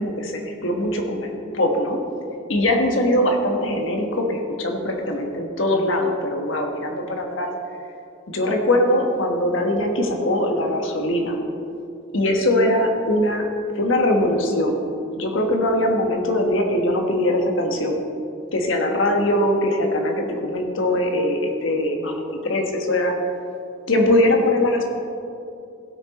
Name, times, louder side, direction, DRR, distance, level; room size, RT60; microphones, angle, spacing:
voice 1, 0.0-2.0 2.5-7.5 8.3-11.4 12.1-13.5 13.7-14.8 15.2-18.0 18.5-23.1 23.9-24.8, left 1 dB, 70° left, 2 dB, 1.4 m, -21 dB
16.5 x 6.2 x 4.2 m, 2.7 s
head